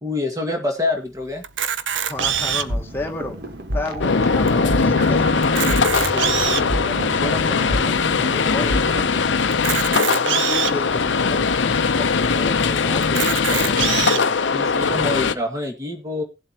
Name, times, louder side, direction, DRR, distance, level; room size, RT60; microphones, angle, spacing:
voice 1, 0.0-1.4 14.5-16.2, left 2 dB, 20° right, 3 dB, 2.0 m, -26 dB
Camera, 1.4-2.8 3.5-3.6 3.8-3.9 4.5-4.6 5.4-6.7 7.4-7.5 9.5-10.7 11.5-11.6 11.8-11.9 13.0-14.2, right 9 dB, 75° right, 0.7 m, -24 dB
voice 2, 2.0-3.4 3.7-9.4 9.8-14.4, left 1 dB, 10° left, 1 dB, 1.6 m, -33 dB
sound 1, 2.2-9.0, equal, 55° right, 1.5 m, -29 dB
sound 2, 4.0-15.3, left 5 dB, 75° left, 0.7 m, -20 dB
18.0 x 7.6 x 3.0 m, 0.27 s
head